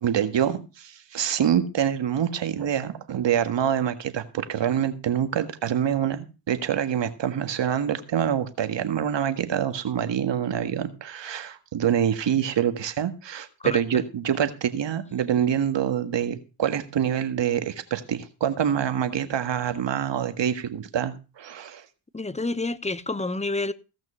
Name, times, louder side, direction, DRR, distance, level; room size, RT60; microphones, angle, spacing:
voice 1, 0.0-21.9, right 9 dB, 60° right, 1.7 m, -26 dB
voice 2, 22.1-23.7, left 2 dB, 15° left, 1.0 m, -28 dB
16.5 x 6.1 x 5.6 m
cardioid pair, 65°, 49 cm